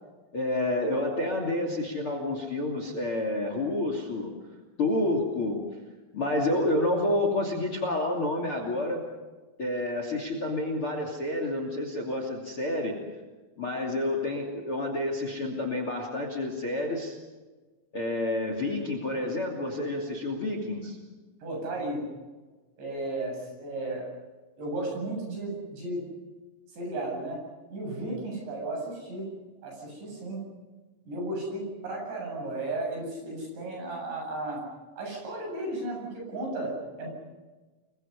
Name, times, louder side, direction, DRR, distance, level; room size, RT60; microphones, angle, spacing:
voice 1, 0.3-4.3 4.8-5.6 6.1-9.0 9.6-13.0 13.6-17.2 17.9-21.0, left 1 dB, 35° left, 4 dB, 2.8 m, -29 dB
voice 2, 21.4-22.0 22.8-24.1 24.6-26.0 26.7-27.4 27.7-29.3 29.6-30.4 31.1-34.6 35.0-37.1, right 2 dB, 60° right, 0 dB, 10.0 m, -34 dB
29.0 x 23.0 x 5.5 m, 1.3 s
omnidirectional pair, 5.9 m